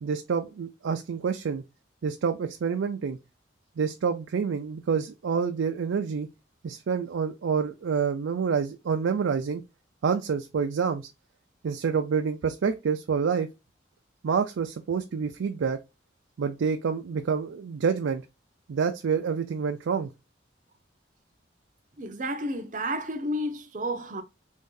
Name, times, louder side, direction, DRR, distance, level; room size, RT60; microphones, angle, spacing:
voice 1, 0.0-1.6 2.0-3.2 3.8-6.3 6.6-9.6 10.0-11.1 11.6-13.5 14.2-15.8 16.4-18.2 18.7-20.1, right 6 dB, 90° right, 0.4 m, -27 dB
voice 2, 22.0-24.2, equal, 40° right, 0.6 m, -31 dB
3.5 x 2.6 x 3.7 m
head